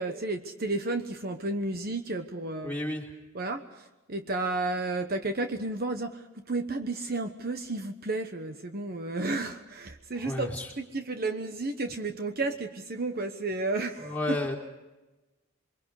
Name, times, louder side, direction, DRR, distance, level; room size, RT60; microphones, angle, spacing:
voice 1, 0.0-2.8 3.3-14.4, right 2 dB, 45° right, 7 dB, 1.1 m, -32 dB
voice 2, 2.6-3.0 10.2-10.7 14.0-14.6, left 1 dB, 10° left, -1 dB, 3.9 m, -32 dB
28.0 x 23.0 x 4.9 m, 1.1 s
head